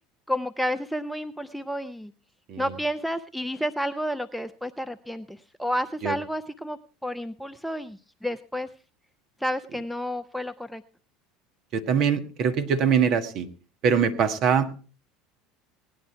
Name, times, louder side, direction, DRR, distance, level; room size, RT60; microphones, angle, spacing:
voice 1, 0.3-2.1 2.6-8.7 9.4-10.8, equal, ahead, 9 dB, 0.6 m, -31 dB
voice 2, 11.7-13.5 13.8-14.7, right 7 dB, 55° right, 8 dB, 1.6 m, -23 dB
18.0 x 10.0 x 4.5 m, 0.37 s
hypercardioid pair, 75°, 0 cm